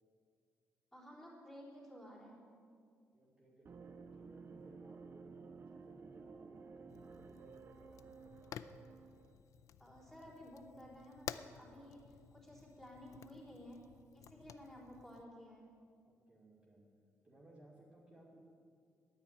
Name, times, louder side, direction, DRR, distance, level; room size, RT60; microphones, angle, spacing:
voice 1, 0.9-2.4 9.8-13.8 14.1-15.7, equal, 10° left, -5 dB, 3.8 m, -54 dB
voice 2, 3.1-8.6 16.0-16.8 17.2-18.4, right 1 dB, 15° right, -6 dB, 2.4 m, -62 dB
sound 1, 3.6-9.4, right 5 dB, 40° right, 0.7 m, -54 dB
Fire, 6.9-15.2, left 9 dB, 70° left, 0.4 m, -53 dB
10.5 x 9.7 x 9.2 m, 2.3 s
cardioid pair, 120°, 6 cm